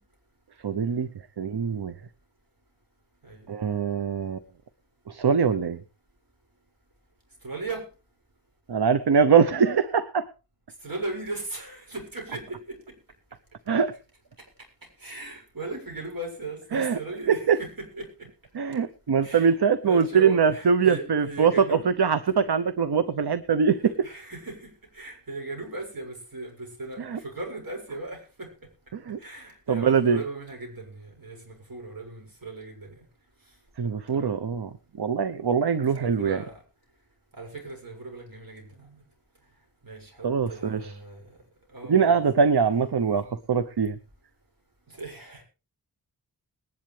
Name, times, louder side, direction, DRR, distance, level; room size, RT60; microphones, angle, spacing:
voice 1, 0.6-1.1 1.4-1.9 3.5-4.4 5.1-5.8 8.7-10.3 13.7-13.9 16.7-17.0 17.3-17.6 18.5-23.8 27.0-27.2 28.9-29.2 29.7-30.2 33.8-34.7 34.9-36.4 40.2-40.9 41.9-44.0, right 6 dB, 80° right, 12 dB, 0.9 m, -23 dB
voice 2, 7.4-7.8 10.8-12.9 15.0-18.3 19.2-19.5 19.8-21.9 23.7-28.5 29.2-33.0 34.1-34.3 36.0-36.6 37.4-39.0 39.8-41.3 41.7-42.3 44.9-45.4, right 3 dB, 60° right, 0 dB, 7.0 m, -38 dB
21.0 x 10.5 x 3.3 m, 0.33 s
wide cardioid pair, 70°, 39 cm